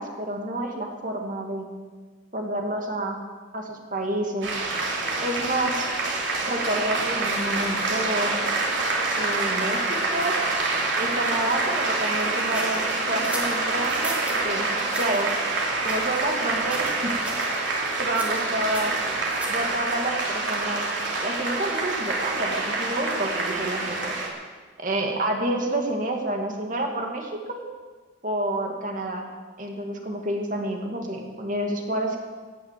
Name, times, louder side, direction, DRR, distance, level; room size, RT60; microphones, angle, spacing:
voice 1, 0.0-1.7 2.3-3.2 3.5-4.5 5.2-5.9 6.4-8.4 9.2-10.4 11.0-14.7 15.0-15.3 15.8-17.1 17.4-17.7 18.0-18.9 19.5-20.8 21.2-24.1 24.8-27.6 28.2-29.2 29.6-32.2, right 1 dB, 40° right, 2 dB, 2.2 m, -29 dB
sound 1, 4.4-24.3, right 3 dB, 75° right, 3.2 m, -26 dB
sound 2, 12.5-14.4 14.9-15.2 15.8-16.4 16.7-17.0 17.2-17.5 18.1-19.7, right 1 dB, 5° right, 2.2 m, -37 dB
17.0 x 11.0 x 7.5 m, 1.5 s
head